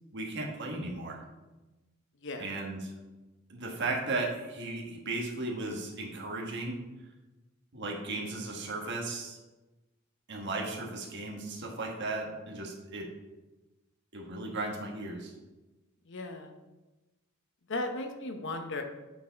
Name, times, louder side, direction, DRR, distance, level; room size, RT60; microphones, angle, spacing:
voice 1, 0.1-1.2 2.4-2.8 3.5-6.8 7.7-9.4 10.3-13.1 14.1-15.3, right 2 dB, 55° right, 0 dB, 1.3 m, -36 dB
voice 2, 16.1-16.5 17.7-18.8, left 2 dB, 60° left, 5 dB, 0.8 m, -36 dB
8.3 x 4.7 x 4.0 m, 1.1 s
head